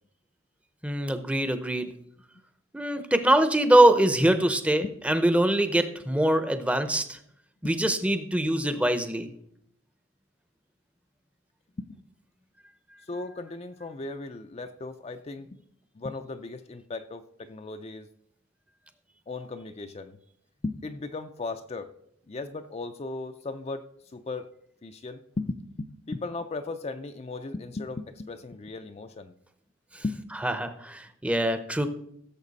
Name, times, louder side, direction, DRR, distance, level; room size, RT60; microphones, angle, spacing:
voice 1, 0.8-1.9 2.7-7.2 7.6-9.3 29.9-30.0 30.4-31.9, right 1 dB, 5° right, 9 dB, 0.7 m, -23 dB
voice 2, 13.1-15.6 16.0-18.1 19.3-20.2 20.6-21.9 22.3-23.8 24.1-24.5 24.8-29.3 30.0-30.3, left 3 dB, 30° left, 8 dB, 0.4 m, -36 dB
16.0 x 7.1 x 4.1 m, 0.74 s
head